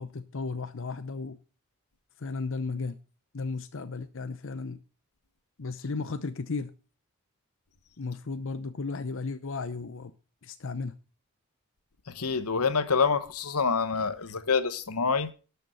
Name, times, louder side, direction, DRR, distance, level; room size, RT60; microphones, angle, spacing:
voice 1, 0.0-1.4 2.2-3.0 3.3-4.8 5.6-6.7 8.0-10.1 10.4-10.9, left 4 dB, 60° left, 0.7 m, -34 dB
voice 2, 12.1-15.3, left 5 dB, 85° left, 1.1 m, -27 dB
12.0 x 6.8 x 6.3 m
head